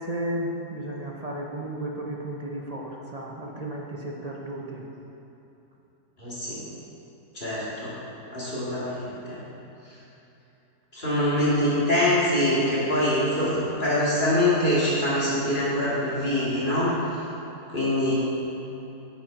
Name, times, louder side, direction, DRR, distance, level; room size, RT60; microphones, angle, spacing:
voice 1, 0.1-4.8, right 1 dB, 40° right, -2 dB, 0.5 m, -33 dB
voice 2, 6.2-6.6 7.3-7.9 8.3-9.4 10.9-16.9 17.7-18.1, left 1 dB, 30° left, -9 dB, 2.3 m, -24 dB
8.9 x 6.2 x 5.8 m, 2.9 s
omnidirectional pair, 1.7 m